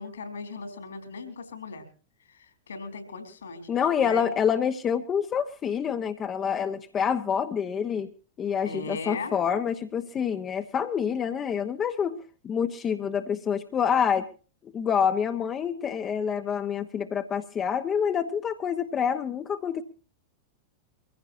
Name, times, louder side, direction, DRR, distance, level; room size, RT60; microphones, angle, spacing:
voice 1, 0.0-1.9 2.3-3.7 4.0-4.3 8.7-9.3, left 3 dB, 70° left, 8 dB, 3.7 m, -38 dB
voice 2, 3.7-8.1 8.4-12.2 12.4-14.3 14.6-19.8, left 7 dB, 25° left, 7 dB, 1.1 m, -27 dB
24.0 x 16.0 x 2.7 m, 0.36 s
figure-of-eight pair, 90°, 0 cm